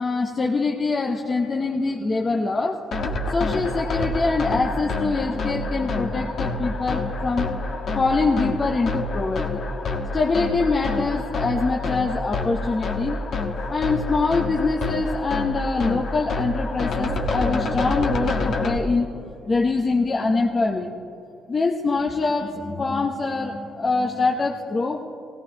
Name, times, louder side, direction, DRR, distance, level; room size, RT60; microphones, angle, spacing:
voice 1, 0.0-2.9 3.3-7.5 7.9-9.6 10.1-13.2 13.7-20.9 21.5-25.0, left 3 dB, 35° left, 1 dB, 0.9 m, -24 dB
sound 1, 2.9-18.8, left 2 dB, 60° left, 1.3 m, -27 dB
18.0 x 17.0 x 3.0 m, 2.7 s
cardioid pair, 90°, 0 cm